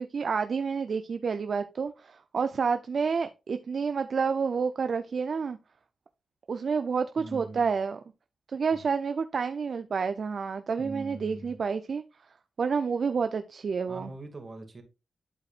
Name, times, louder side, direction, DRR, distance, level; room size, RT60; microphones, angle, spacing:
voice 1, 0.0-5.6 6.5-8.0 8.5-12.0 12.6-14.1, right 5 dB, 65° right, 0.5 m, -29 dB
voice 2, 7.2-7.7 10.8-11.5 13.9-14.8, right 2 dB, 45° right, 2.2 m, -42 dB
11.5 x 4.8 x 2.5 m
cardioid pair, 55°, 0 cm